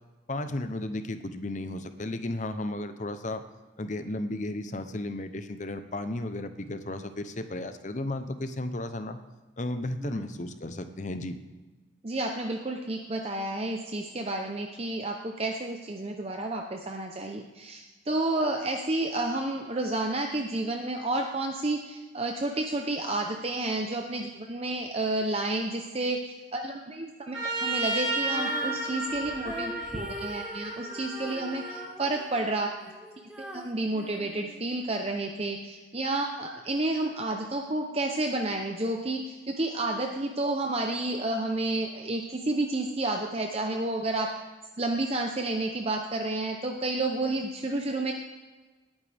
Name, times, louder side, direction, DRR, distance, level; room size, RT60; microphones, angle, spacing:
voice 1, 0.3-3.4 3.8-9.2 9.6-11.4, left 1 dB, 40° left, 10 dB, 0.7 m, -34 dB
voice 2, 12.0-32.8 33.4-44.3 44.8-48.1, right 2 dB, 30° right, 3 dB, 0.8 m, -30 dB
Trumpet, 27.3-31.9, right 2 dB, 80° right, 3.8 m, -33 dB
Female singing, 28.1-35.2, equal, 5° right, 1.0 m, -42 dB
19.5 x 9.0 x 3.5 m, 1.3 s
head